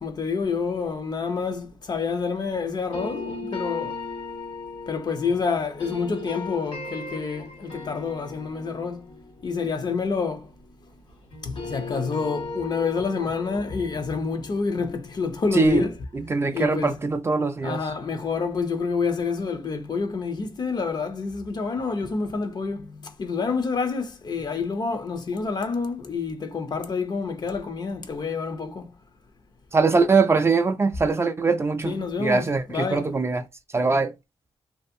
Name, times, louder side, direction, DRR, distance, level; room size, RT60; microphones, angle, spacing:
voice 1, 0.0-4.0 4.9-9.1 9.4-10.5 11.4-16.0 16.5-17.0 17.6-28.9 31.8-33.1, left 5 dB, 45° left, 0.5 m, -28 dB
sound 1, 2.9-11.0 11.3-16.3, left 3 dB, 75° left, 1.3 m, -38 dB
voice 2, 15.5-15.9 16.1-17.8 29.7-32.6 32.9-33.4 33.7-34.1, right 4 dB, 25° right, 0.3 m, -22 dB
2.6 x 2.4 x 2.5 m
cardioid pair, 95°, 10 cm